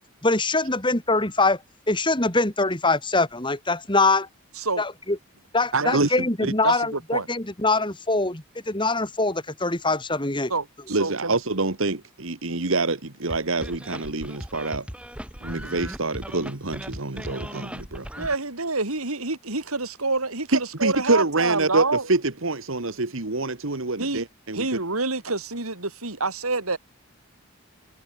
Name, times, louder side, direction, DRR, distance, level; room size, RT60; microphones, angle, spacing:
voice 1, 0.2-1.6 1.9-4.3 4.8-5.2 5.5-10.5, left 3 dB, 20° left, 2.9 m, -23 dB
voice 2, 5.7-6.2 6.4-6.5 10.9-14.9 15.4-18.1 20.5-24.8, right 3 dB, 65° right, 1.7 m, -26 dB
voice 3, 6.6-7.3 10.5-11.3 18.2-22.1 24.0-24.2 24.5-26.8, right 3 dB, 85° right, 4.9 m, -27 dB
sound 1, 13.3-18.3, equal, 5° right, 6.2 m, -37 dB
head